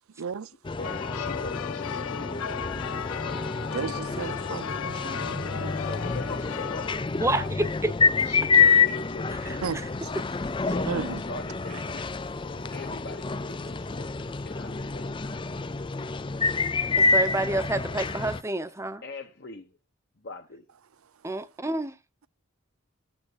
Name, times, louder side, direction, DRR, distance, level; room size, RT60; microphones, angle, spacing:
voice 1, 0.2-0.5 3.7-5.8 9.6-9.8 10.9-11.2, right 6 dB, 85° right, 0.5 m, -34 dB
sound 1, 0.6-18.4, left 4 dB, 25° left, 0.4 m, -27 dB
sound 2, 0.8-7.0, left 8 dB, 80° left, 0.4 m, -35 dB
voice 2, 0.8-2.4 5.8-6.9 7.3-7.5 8.2-9.9 10.6-12.0 12.7-14.1 14.4-15.4 19.0-19.7 20.2-20.6, left 3 dB, 50° left, 1.2 m, -41 dB
voice 3, 9.4-9.9 17.0-19.0 21.2-22.0, right 2 dB, 15° right, 0.8 m, -29 dB
14.5 x 9.1 x 2.4 m
head